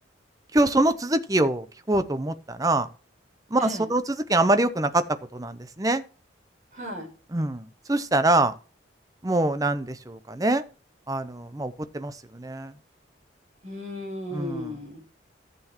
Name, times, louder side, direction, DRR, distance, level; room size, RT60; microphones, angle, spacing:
voice 1, 0.5-2.9 3.5-5.0 5.3-6.0 7.3-8.5 9.2-10.6 11.1-12.7 14.3-14.7, right 2 dB, 20° right, 12 dB, 0.7 m, -24 dB
voice 2, 3.5-3.9 6.7-7.1 13.6-15.0, left 1 dB, 40° right, 1 dB, 4.4 m, -35 dB
14.5 x 6.9 x 3.0 m, 0.39 s
head